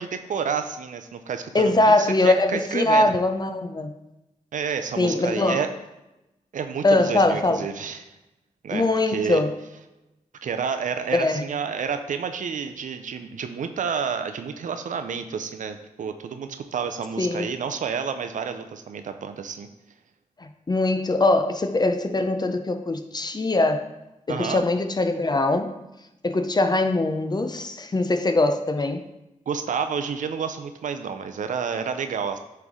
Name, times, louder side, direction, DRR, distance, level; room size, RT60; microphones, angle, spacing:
voice 1, 0.0-3.1 4.5-5.7 6.5-8.1 8.6-9.4 10.4-19.7 24.3-24.6 29.5-32.4, right 6 dB, 75° right, 8 dB, 0.5 m, -30 dB
voice 2, 1.5-3.9 5.0-5.6 6.8-7.6 8.7-9.5 11.1-11.4 17.2-17.5 20.4-23.8 24.3-25.8 26.2-29.0, left 2 dB, 30° left, 7 dB, 0.6 m, -22 dB
9.1 x 3.3 x 3.7 m, 0.96 s
cardioid pair, 55°, 13 cm